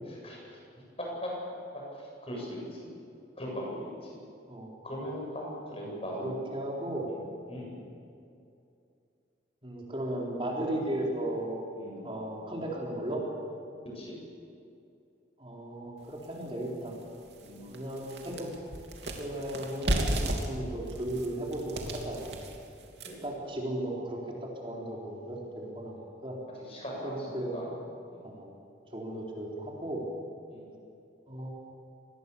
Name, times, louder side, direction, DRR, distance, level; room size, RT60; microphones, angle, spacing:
voice 1, 0.1-0.4 1.0-1.3 1.9-2.9 3.4-4.2 4.8-6.3 7.1-7.2 7.5-7.8 10.8-10.9 11.7-12.1 13.9-14.2 16.8-16.9 17.4-17.7 23.0-23.2 26.5-27.7 28.1-28.2 30.5-30.7, equal, 35° left, -2 dB, 7.9 m, -39 dB
voice 2, 5.8-7.0 9.6-11.6 12.0-13.2 15.4-16.9 17.6-18.5 19.2-22.3 23.2-26.4 27.0-27.6 28.2-28.5 28.9-30.0 31.3-31.5, right 1 dB, 30° right, -2 dB, 4.1 m, -36 dB
sound 1, 16.2-16.3 16.8-16.9 17.3-23.3, right 1 dB, 70° right, 3.0 m, -34 dB
26.0 x 20.0 x 7.1 m, 2.5 s
head